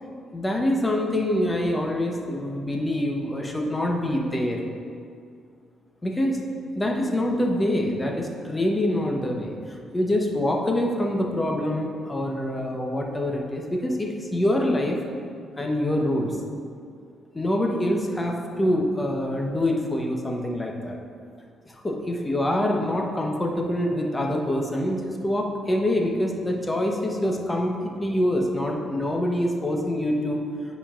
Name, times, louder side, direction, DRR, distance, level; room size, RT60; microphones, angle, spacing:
voice 1, 0.3-4.6 6.0-6.4 6.8-9.5 9.9-15.0 15.6-16.3 17.3-21.0 21.8-30.4, left 1 dB, 20° left, 1 dB, 0.9 m, -25 dB
9.8 x 5.2 x 2.5 m, 2.3 s
cardioid pair, 90°, 0 cm